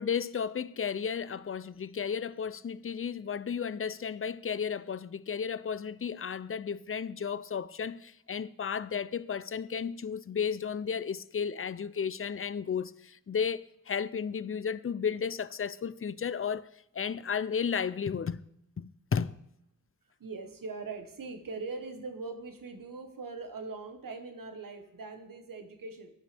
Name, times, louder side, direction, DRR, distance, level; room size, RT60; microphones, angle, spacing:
voice 1, 0.0-16.7 17.0-18.4 18.8-19.4, left 7 dB, 40° left, 0.5 m, -33 dB
voice 2, 20.2-26.1, right 3 dB, 90° right, 1.4 m, -41 dB
15.0 x 10.5 x 3.5 m
cardioid pair, 55°, 32 cm